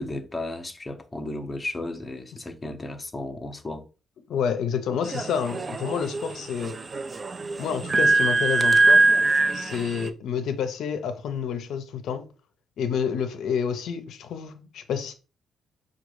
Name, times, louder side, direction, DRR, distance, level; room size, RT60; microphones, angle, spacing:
voice 1, 0.0-3.9, left 2 dB, 20° left, 0.6 m, -34 dB
voice 2, 4.3-6.8 7.6-9.0 9.5-12.3 12.8-15.1, left 7 dB, 75° left, 0.5 m, -29 dB
sound 1, 5.1-10.1, right 2 dB, 35° right, 0.4 m, -22 dB
4.7 x 2.3 x 3.1 m
cardioid pair, 90°, 0 cm